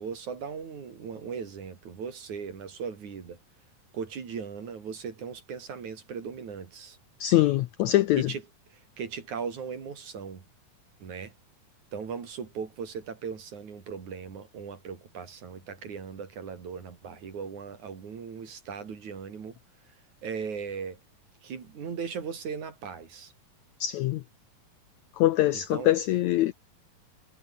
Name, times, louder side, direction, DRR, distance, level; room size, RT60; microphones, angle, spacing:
voice 1, 0.0-3.4 3.9-7.0 8.2-8.4 8.7-10.4 11.0-11.3 11.9-19.6 20.2-21.0 21.4-23.3 25.5-25.9, right 6 dB, 55° right, 4.6 m, -38 dB
voice 2, 7.2-8.3 23.8-24.2 25.2-26.5, left 15 dB, 75° left, 1.7 m, -23 dB
omnidirectional pair, 4.1 m